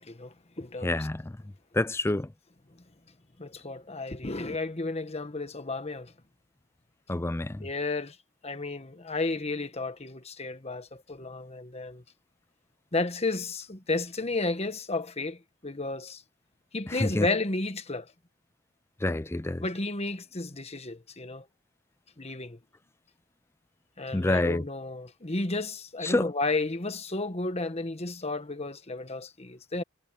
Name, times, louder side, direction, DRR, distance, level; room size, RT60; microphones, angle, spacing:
voice 1, 0.0-1.1 3.4-6.1 7.6-8.2 8.4-12.0 12.9-16.2 16.7-18.1 19.6-21.4 22.2-22.6 24.0-29.8, left 3 dB, 30° left, 1.4 m, -32 dB
voice 2, 0.8-1.3 1.7-2.3 7.1-7.7 16.9-17.3 19.0-19.6 24.1-24.6 26.0-26.3, left 2 dB, 15° left, 0.4 m, -27 dB
head